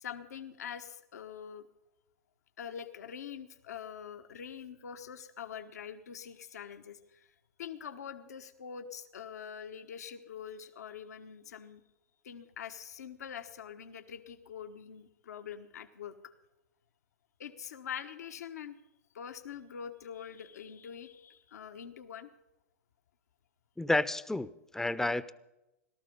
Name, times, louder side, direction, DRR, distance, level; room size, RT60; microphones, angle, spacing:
voice 1, 0.0-1.6 2.6-7.3 7.6-11.8 12.2-16.3 17.4-18.8 19.1-22.3, left 8 dB, 85° left, 7 dB, 1.3 m, -44 dB
voice 2, 23.8-25.3, left 2 dB, 5° left, 15 dB, 0.7 m, -30 dB
18.0 x 12.5 x 5.4 m, 0.93 s
hypercardioid pair, 115°, 9 cm